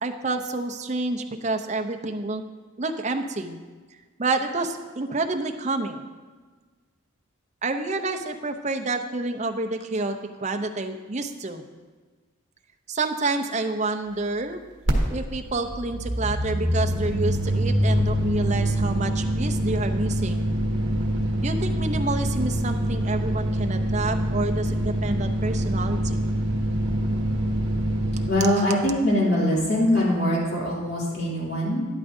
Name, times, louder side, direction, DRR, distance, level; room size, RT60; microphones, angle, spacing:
voice 1, 0.0-2.4 2.8-3.6 4.2-6.0 7.6-11.6 12.9-14.6 15.1-20.5 21.4-26.2, right 3 dB, 35° right, 6 dB, 0.6 m, -28 dB
sound 1, 14.9-15.0 15.2-28.3, equal, 60° right, 1.5 m, -25 dB
voice 2, 28.3-31.9, left 1 dB, 50° left, -6 dB, 2.9 m, -23 dB
12.0 x 11.0 x 2.7 m, 1.4 s
head